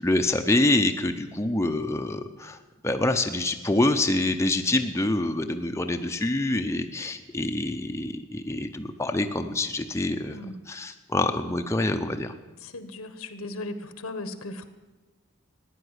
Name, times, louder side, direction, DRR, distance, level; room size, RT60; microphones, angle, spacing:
voice 1, 0.0-2.6 2.8-12.3, left 2 dB, 15° left, 5 dB, 0.6 m, -26 dB
voice 2, 10.2-10.6 12.6-14.7, left 2 dB, 85° left, 11 dB, 1.2 m, -37 dB
15.0 x 10.5 x 8.1 m, 1.2 s
head